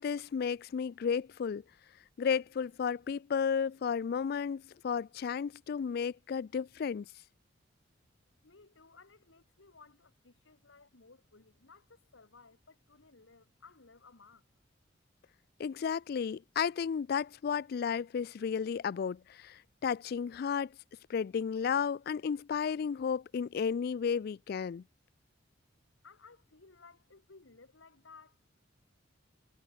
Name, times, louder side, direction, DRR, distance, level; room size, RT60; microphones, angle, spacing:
voice 1, 0.0-1.6 2.2-7.1 15.6-20.7 21.1-24.8, left 6 dB, 50° left, 0.3 m, -33 dB
voice 2, 8.4-14.5 26.0-28.4, left 4 dB, 80° left, 1.5 m, -58 dB
head